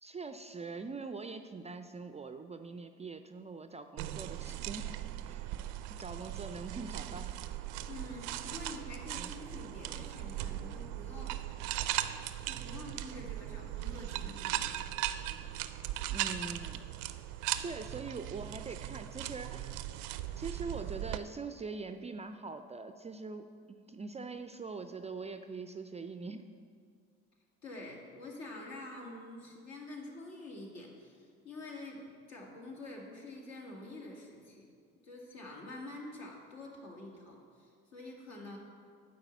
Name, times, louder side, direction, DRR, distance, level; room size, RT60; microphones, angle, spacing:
voice 1, 0.0-4.9 5.2-5.5 6.0-7.4 9.1-9.3 16.1-16.8 17.6-19.7 20.4-26.5, right 4 dB, 20° right, 8 dB, 0.4 m, -43 dB
sound 1, 4.0-21.2, right 13 dB, 80° right, 0.5 m, -38 dB
voice 2, 7.9-11.6 12.4-14.7 27.6-34.7 35.0-38.6, left 2 dB, 60° left, -2 dB, 2.3 m, -47 dB
8.9 x 4.8 x 7.1 m, 2.1 s
hypercardioid pair, 65°, 31 cm